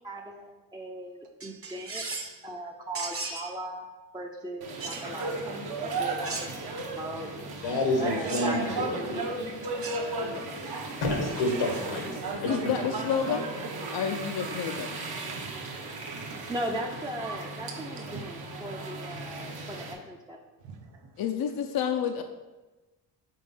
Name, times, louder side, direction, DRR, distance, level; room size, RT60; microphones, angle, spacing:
voice 1, 0.0-2.0 2.4-3.8 4.1-6.5 6.8-7.3 8.0-9.5 16.5-20.4, right 1 dB, 10° right, -1 dB, 0.6 m, -38 dB
sound 1, 1.4-2.4 2.9-3.5 4.8-5.1 6.2-6.8 8.3-8.6 9.6-10.1 11.4-11.8, right 3 dB, 30° right, 1.0 m, -37 dB
sound 2, 4.6-19.9, right 3 dB, 55° right, 1.2 m, -35 dB
voice 2, 7.6-9.2 11.0-12.1 12.4-12.7, left 2 dB, 90° left, 1 dB, 1.7 m, -28 dB
voice 3, 12.5-13.5 13.9-14.9 21.2-22.2, left 8 dB, 55° left, 5 dB, 0.6 m, -29 dB
voice 4, 15.3-16.5 17.7-18.2 19.2-19.8 20.6-21.2, right 5 dB, 75° right, 2 dB, 1.0 m, -47 dB
5.4 x 4.0 x 5.4 m, 1.2 s
cardioid pair, 80°, 43 cm